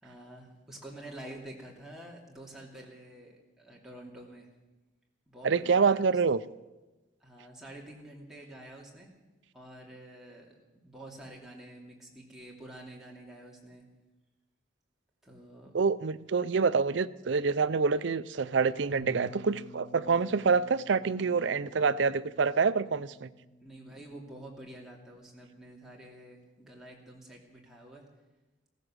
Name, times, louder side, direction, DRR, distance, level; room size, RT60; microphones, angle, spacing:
voice 1, 0.0-4.5 5.3-6.2 7.2-9.1 9.5-13.8 15.2-15.7 23.6-28.0, right 1 dB, ahead, 2.7 m, -48 dB
voice 2, 5.4-6.4 15.7-23.3, right 5 dB, 65° right, 0.5 m, -26 dB
Bass guitar, 18.9-25.2, left 2 dB, 80° left, 5.5 m, -52 dB
15.5 x 14.5 x 6.3 m
head